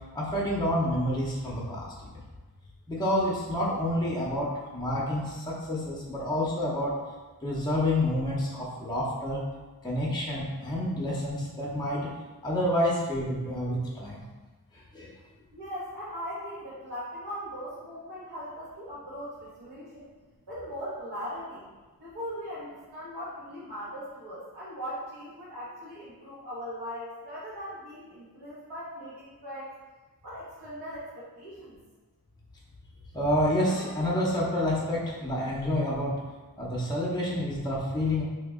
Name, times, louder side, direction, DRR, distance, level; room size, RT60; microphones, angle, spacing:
voice 1, 0.1-2.1 2.9-6.9 7.4-9.4 9.8-12.1 12.4-14.2 14.9-15.1 33.1-36.2 36.6-38.2, left 1 dB, 10° left, -4 dB, 0.7 m, -28 dB
voice 2, 15.5-20.1 20.5-21.6 22.0-29.7 30.2-31.8, equal, 75° right, -11 dB, 1.1 m, -39 dB
3.0 x 2.8 x 3.6 m, 1.3 s
wide cardioid pair, 125°, 37 cm